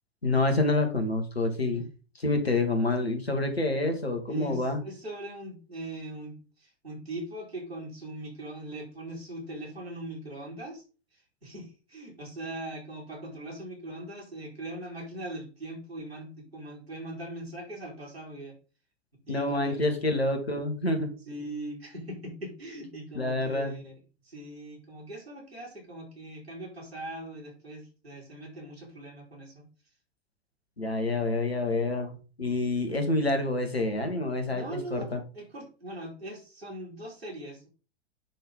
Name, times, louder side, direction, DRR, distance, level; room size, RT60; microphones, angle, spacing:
voice 1, 0.2-1.8 2.2-4.8 19.3-21.2 23.1-23.8 30.8-32.1 32.4-35.2, left 2 dB, 85° left, 6 dB, 1.9 m, -27 dB
voice 2, 4.3-10.8 11.1-18.6 19.3-19.9 21.3-23.9 24.2-29.7 34.5-37.7, right 1 dB, 85° right, -4 dB, 4.8 m, -41 dB
9.9 x 3.9 x 5.2 m, 0.35 s
figure-of-eight pair, 90°, 30 cm